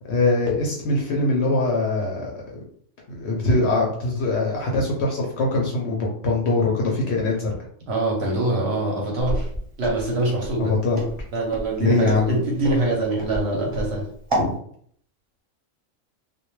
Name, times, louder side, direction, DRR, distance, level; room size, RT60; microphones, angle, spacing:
voice 1, 0.1-2.6 3.1-7.6 10.6-11.0 11.8-12.4 14.4-14.5, left 2 dB, 65° left, -1 dB, 0.7 m, -22 dB
voice 2, 7.9-9.5 9.8-10.7 11.3-14.1, right 2 dB, 60° right, -1 dB, 0.8 m, -24 dB
Walk footsteps, 9.2-14.5, right 1 dB, 35° right, 0.6 m, -29 dB
2.2 x 2.1 x 3.0 m, 0.63 s
omnidirectional pair, 1.4 m